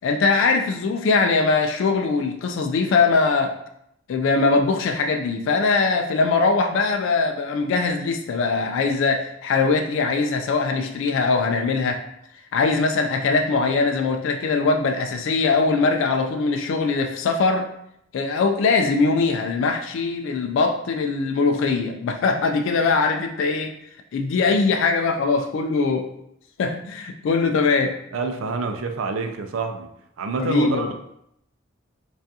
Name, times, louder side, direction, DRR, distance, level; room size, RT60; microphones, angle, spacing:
voice 1, 0.0-3.6 4.1-12.0 12.5-17.7 18.1-23.7 24.1-26.1 26.6-28.0 30.4-30.9, left 4 dB, 70° left, 5 dB, 0.3 m, -21 dB
voice 2, 28.1-29.9 30.2-30.9, right 4 dB, 85° right, 5 dB, 0.4 m, -27 dB
4.8 x 2.4 x 2.7 m, 0.76 s
head